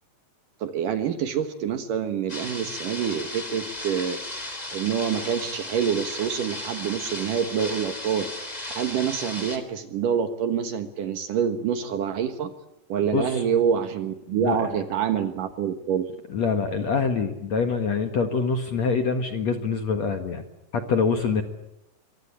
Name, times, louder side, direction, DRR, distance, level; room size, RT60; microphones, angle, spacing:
voice 1, 0.6-4.2 4.7-8.3 8.8-12.5 12.9-16.1, right 8 dB, 60° right, 9 dB, 2.6 m, -26 dB
sound 1, 2.3-9.6, left 1 dB, 10° left, 2.6 m, -35 dB
voice 2, 13.1-13.4 14.3-14.7 16.3-20.4 20.7-21.4, left 5 dB, 55° left, 7 dB, 2.1 m, -25 dB
24.5 x 24.0 x 8.8 m, 0.87 s
omnidirectional pair, 4.9 m